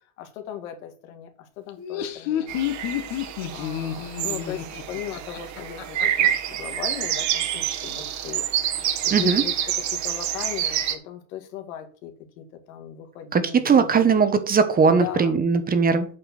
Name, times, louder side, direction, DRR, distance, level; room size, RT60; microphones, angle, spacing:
voice 1, 0.2-2.5 3.5-14.1 14.9-15.3, left 10 dB, 85° left, 2.1 m, -38 dB
Laughter, 1.7-6.3, left 11 dB, 55° left, 1.7 m, -30 dB
sound 1, 2.5-11.0, right 10 dB, 45° right, 1.6 m, -27 dB
voice 2, 9.1-9.4 13.3-16.1, right 5 dB, 20° right, 1.1 m, -19 dB
8.4 x 4.6 x 6.2 m
supercardioid pair, 120°, 41 cm